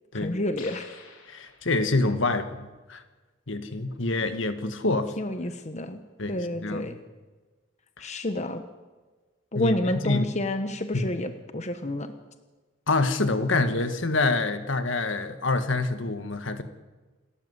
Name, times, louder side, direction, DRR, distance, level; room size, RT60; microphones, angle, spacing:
voice 1, 0.2-0.9 5.2-6.0 6.3-7.0 8.0-8.6 9.5-12.1, left 1 dB, 35° left, 8 dB, 1.2 m, -29 dB
sound 1, 0.5-2.1, left 5 dB, 85° left, 3.4 m, -48 dB
voice 2, 1.3-3.0 3.5-5.1 6.2-6.4 6.6-6.9 9.5-9.7 10.0-10.2 10.9-11.1 12.9-16.6, left 2 dB, 70° left, 9 dB, 1.6 m, -26 dB
27.5 x 13.5 x 8.2 m, 1.3 s
head